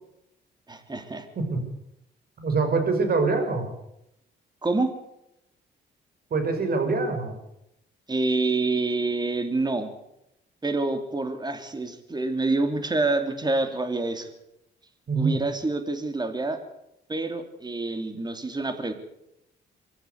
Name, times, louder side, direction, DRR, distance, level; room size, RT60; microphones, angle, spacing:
voice 1, 0.7-1.3 4.6-4.9 8.1-9.9 10.6-14.3 15.2-16.6 17.1-18.9, right 3 dB, 20° right, 8 dB, 3.1 m, -27 dB
voice 2, 2.4-3.7 6.3-7.4 15.1-15.4, right 4 dB, 50° right, 7 dB, 6.0 m, -24 dB
24.5 x 13.0 x 8.2 m, 0.83 s
cardioid pair, 90°, 20 cm